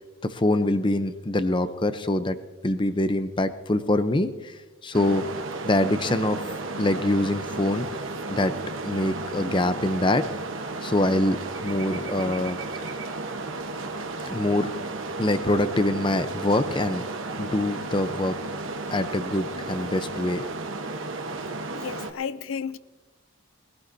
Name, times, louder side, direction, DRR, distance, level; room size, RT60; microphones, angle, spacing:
voice 1, 0.2-2.4 2.6-5.2 5.6-6.4 6.8-7.9 8.3-8.5 8.8-10.2 10.8-11.4 11.6-12.6 14.3-14.7 15.2-17.0 17.4-18.4 18.9-20.4, left 1 dB, 25° left, 0.6 m, -24 dB
sound 1, 4.9-22.1, right 3 dB, 70° right, 1.1 m, -33 dB
voice 2, 21.7-22.8, left 6 dB, 75° left, 0.5 m, -32 dB
21.5 x 16.0 x 2.7 m
head